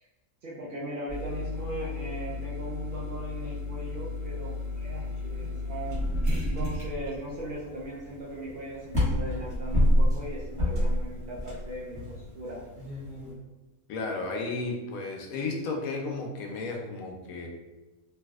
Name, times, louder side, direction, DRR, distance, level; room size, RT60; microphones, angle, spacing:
voice 1, 0.4-6.0 6.4-12.7, equal, 65° right, -6 dB, 0.5 m, -38 dB
sound 1, 1.1-13.3, left 1 dB, 5° left, 1.0 m, -30 dB
voice 2, 13.9-17.5, left 3 dB, 80° left, 1 dB, 1.0 m, -33 dB
3.3 x 2.6 x 2.3 m, 1.1 s
omnidirectional pair, 1.5 m